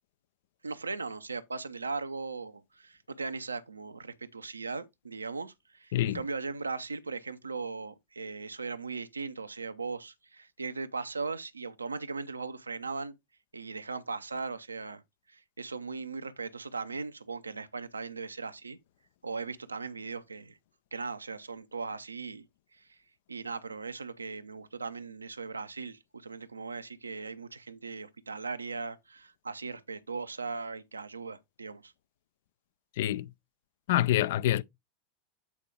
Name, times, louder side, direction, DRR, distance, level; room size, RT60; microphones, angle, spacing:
voice 1, 0.6-13.2 13.5-15.0 15.3-18.8 19.2-20.6 20.9-22.5 22.7-23.0 23.3-31.9, right 4 dB, 80° right, 0.6 m, -38 dB
voice 2, 33.0-33.3 33.9-34.6, left 13 dB, 55° left, 0.4 m, -26 dB
8.4 x 4.4 x 3.4 m
figure-of-eight pair, 85°, 0 cm